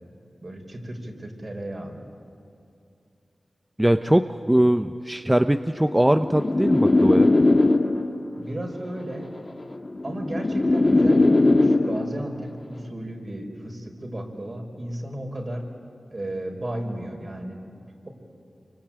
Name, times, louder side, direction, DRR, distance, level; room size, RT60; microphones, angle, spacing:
voice 1, 0.4-2.1 8.3-9.3 10.0-15.7 16.1-17.6, right 1 dB, 45° right, 2 dB, 5.2 m, -34 dB
voice 2, 3.8-7.3, right 1 dB, 15° right, 8 dB, 0.8 m, -21 dB
sound 1, 5.9-8.2 9.2-12.2, left 2 dB, 40° left, 1.7 m, -20 dB
27.0 x 24.5 x 8.9 m, 2.6 s
cardioid pair, 45°, 0 cm